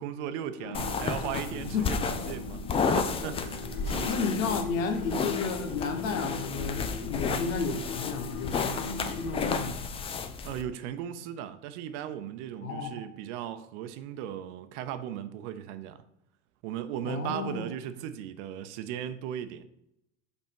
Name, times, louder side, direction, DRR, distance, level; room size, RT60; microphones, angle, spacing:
voice 1, 0.0-4.2 10.4-16.0 16.6-19.7, right 10 dB, 60° right, 0.7 m, -37 dB
sound 1, 0.6-9.7, left 3 dB, 65° left, 1.3 m, -40 dB
sound 2, 0.7-10.6, left 5 dB, 15° left, 0.3 m, -32 dB
voice 2, 4.1-8.8 9.1-9.9 12.6-13.0 17.0-17.7, left 5 dB, 80° left, 1.3 m, -32 dB
5.3 x 4.4 x 5.2 m
supercardioid pair, 115°, 40 cm